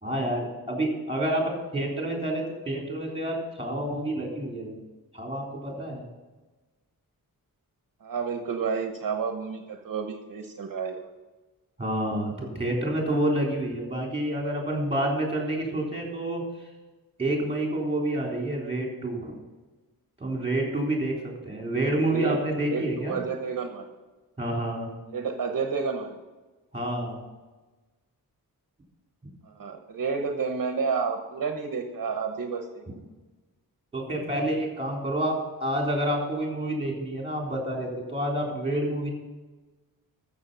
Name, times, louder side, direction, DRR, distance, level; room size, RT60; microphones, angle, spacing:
voice 1, 0.0-4.8 5.1-6.0 11.8-16.7 17.2-19.3 20.2-21.1 21.4-23.2 24.4-24.9 26.7-27.2 33.9-39.1, right 1 dB, 15° right, -1 dB, 3.7 m, -28 dB
voice 2, 8.0-11.1 22.1-22.4 22.7-23.9 25.1-26.2 29.4-32.8, right 5 dB, 60° right, 4 dB, 1.1 m, -30 dB
14.0 x 6.9 x 5.6 m, 1.2 s
wide cardioid pair, 145°, 36 cm